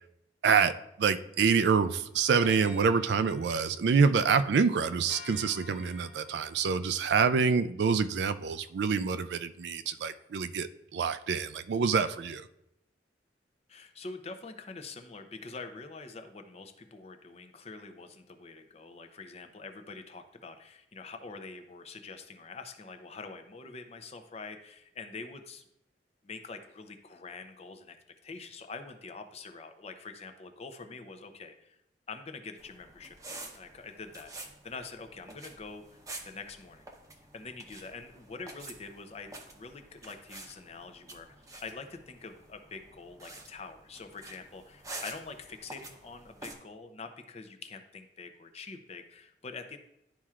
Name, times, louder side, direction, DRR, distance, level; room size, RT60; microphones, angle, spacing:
voice 1, 0.4-12.4, right 5 dB, 70° right, 0.4 m, -26 dB
sound 1, 1.6-6.7, left 3 dB, 65° left, 1.0 m, -51 dB
voice 2, 13.7-25.6 26.2-28.0 28.2-31.8 32.1-33.2 33.5-36.9 37.3-49.8, left 4 dB, 35° left, 0.6 m, -45 dB
sound 2, 32.6-46.5, right 2 dB, 20° right, 0.7 m, -48 dB
11.0 x 4.3 x 2.4 m
head